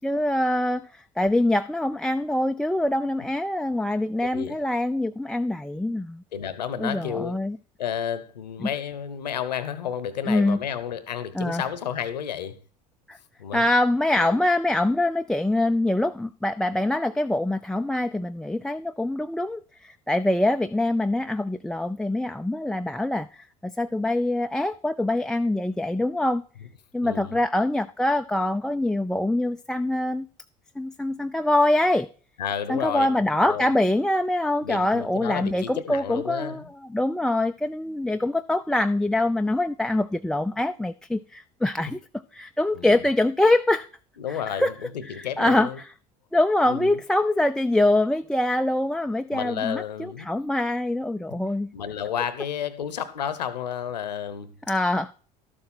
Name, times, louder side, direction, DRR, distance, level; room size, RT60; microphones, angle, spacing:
voice 1, 0.0-6.2 6.8-7.6 8.6-8.7 10.3-10.6 11.3-11.6 13.1-13.2 13.5-26.4 26.9-30.3 30.8-32.1 32.7-36.6 36.9-42.0 42.3-43.9 44.3-44.7 45.0-45.9 46.3-51.7 54.7-55.1, left 1 dB, 5° left, 0.4 m, -24 dB
voice 2, 6.3-7.4 7.8-12.6 13.4-13.7 14.2-14.4 27.0-27.4 32.4-33.7 34.6-36.7 40.5-40.6 42.7-43.0 44.2-45.8 46.6-47.0 49.3-50.3 51.3-51.4 51.7-54.5, left 8 dB, 90° left, 1.0 m, -31 dB
12.5 x 7.5 x 4.3 m
hypercardioid pair, 75°, 21 cm